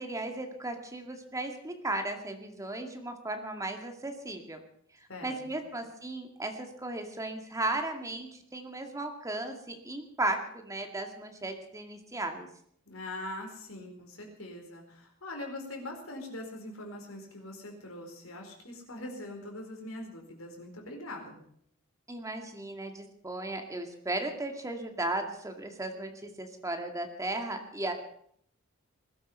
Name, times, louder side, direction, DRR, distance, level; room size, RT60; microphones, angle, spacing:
voice 1, 0.0-4.6 5.2-12.5 22.1-27.9, right 2 dB, 15° right, 4 dB, 2.2 m, -36 dB
voice 2, 12.9-21.4, left 1 dB, 75° left, 2 dB, 4.7 m, -42 dB
20.5 x 12.5 x 5.6 m, 0.65 s
head